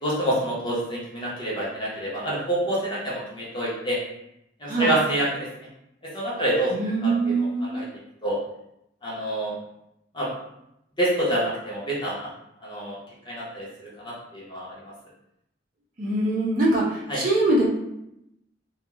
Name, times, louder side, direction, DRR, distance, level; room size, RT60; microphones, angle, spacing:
voice 1, 0.0-4.0 4.6-5.5 6.1-6.7 7.0-7.8 8.2-8.4 9.0-9.5 10.1-10.3 11.0-12.3 12.6-13.0 13.3-14.7 17.1-17.2, right 1 dB, 25° left, -6 dB, 0.8 m, -27 dB
voice 2, 4.7-5.0 6.7-7.8 16.0-17.7, right 2 dB, 45° right, -6 dB, 0.7 m, -23 dB
2.3 x 2.2 x 3.0 m, 0.82 s
head